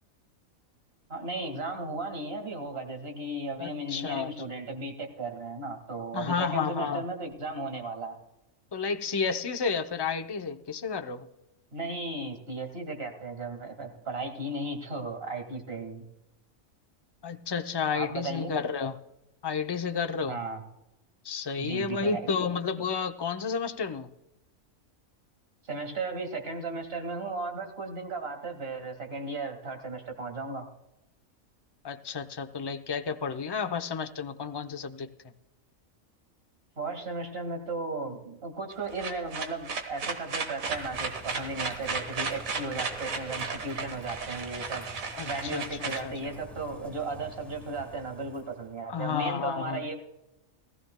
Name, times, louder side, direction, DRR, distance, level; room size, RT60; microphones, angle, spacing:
voice 1, 1.1-8.2 11.7-16.0 17.9-18.5 20.3-20.6 21.6-22.3 25.7-30.7 36.8-44.9 45.2-49.9, right 3 dB, 45° right, 4 dB, 2.2 m, -35 dB
voice 2, 3.6-4.3 6.1-7.0 8.7-11.3 17.2-19.0 19.4-20.4 21.2-24.1 31.8-35.1 45.1-46.2 48.9-49.8, left 5 dB, 35° left, 7 dB, 0.4 m, -31 dB
sound 1, 38.7-46.8, right 4 dB, 85° right, 1.8 m, -35 dB
Bird / Rain, 40.7-48.8, right 2 dB, ahead, 1.4 m, -48 dB
19.0 x 15.0 x 2.2 m, 0.91 s
omnidirectional pair, 1.4 m